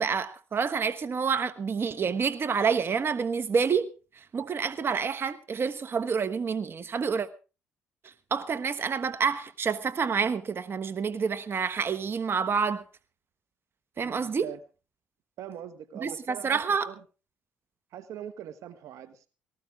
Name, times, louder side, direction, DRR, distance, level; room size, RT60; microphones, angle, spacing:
voice 1, 0.0-3.9 4.3-7.3 8.3-12.8 14.0-14.5 16.0-16.9, right 6 dB, 45° right, 1.3 m, -28 dB
voice 2, 14.0-14.6 15.4-16.6 16.8-16.9 17.9-19.3, right 11 dB, 70° right, 1.2 m, -42 dB
19.0 x 14.0 x 3.7 m
hypercardioid pair, 55°, 6 cm